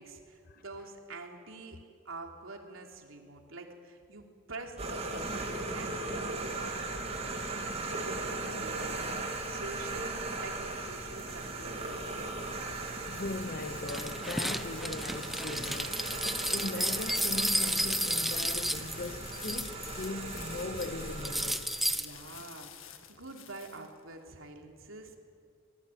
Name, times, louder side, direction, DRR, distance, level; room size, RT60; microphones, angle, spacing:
voice 1, 0.0-9.0 9.4-12.4 21.9-25.2, right 2 dB, 80° right, 3.3 m, -46 dB
sound 1, 4.8-21.5, right 2 dB, 30° right, 3.1 m, -38 dB
sound 2, 10.6-24.3, left 9 dB, 80° left, 1.9 m, -50 dB
voice 2, 13.1-16.0 16.5-21.8, left 2 dB, 45° left, 0.8 m, -39 dB
sound 3, 13.9-20.1 20.4-20.9 21.2-22.0, equal, ahead, 0.8 m, -32 dB
25.5 x 20.5 x 9.3 m
head